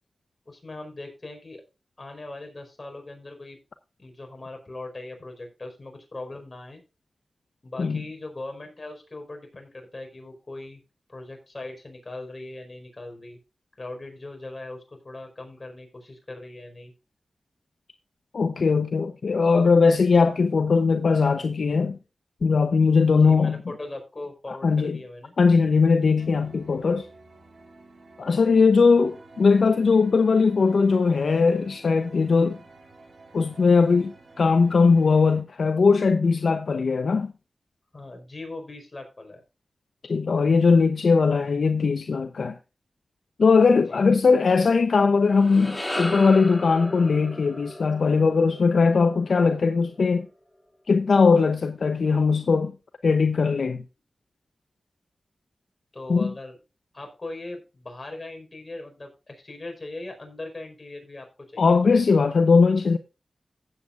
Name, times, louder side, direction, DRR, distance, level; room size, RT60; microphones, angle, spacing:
voice 1, 0.5-1.6 2.0-3.6 4.0-6.8 7.6-10.8 11.1-13.4 13.8-16.9 23.2-25.3 37.9-39.4 43.9-44.0 55.9-56.6 56.9-61.2 61.5-61.9, left 2 dB, 40° left, 4.8 m, -39 dB
voice 2, 18.3-22.0 22.4-23.6 24.5-25.0 25.4-27.1 28.2-32.6 33.3-37.3 40.0-42.6 43.4-50.3 50.9-52.8 53.0-53.8 56.1-56.3 61.6-63.0, left 4 dB, 80° left, 0.8 m, -20 dB
sound 1, 26.2-35.4, right 2 dB, 65° right, 3.9 m, -50 dB
sound 2, 45.2-49.6, left 1 dB, 15° left, 2.6 m, -35 dB
16.0 x 8.4 x 2.5 m
cardioid pair, 55°, 0 cm